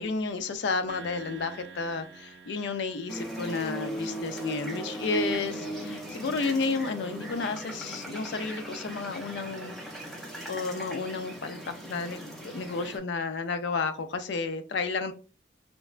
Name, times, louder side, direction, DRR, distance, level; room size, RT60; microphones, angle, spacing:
voice 1, 0.0-9.7 10.5-15.1, left 4 dB, 65° left, 0.4 m, -32 dB
sound 1, 0.9-4.4, right 4 dB, 65° right, 0.4 m, -48 dB
sound 2, 3.1-13.0, right 1 dB, ahead, 0.6 m, -38 dB
3.2 x 2.1 x 2.4 m
head